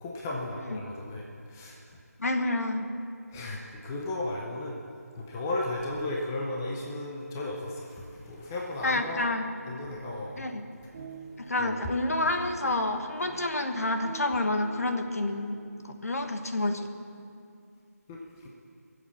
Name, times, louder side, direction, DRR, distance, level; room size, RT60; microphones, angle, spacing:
voice 1, 0.0-1.8 3.3-4.7 5.2-9.3 9.7-10.5 11.6-11.8 18.1-18.5, left 2 dB, 10° left, -2 dB, 0.6 m, -35 dB
voice 2, 2.2-2.8 8.8-9.5 10.4-10.6 11.4-15.6 15.8-16.9, left 2 dB, 65° left, 5 dB, 1.4 m, -29 dB
sound 1, 8.7-16.2, right 5 dB, 15° right, 0.8 m, -47 dB
22.0 x 7.5 x 7.2 m, 2.4 s
figure-of-eight pair, 170°, 9 cm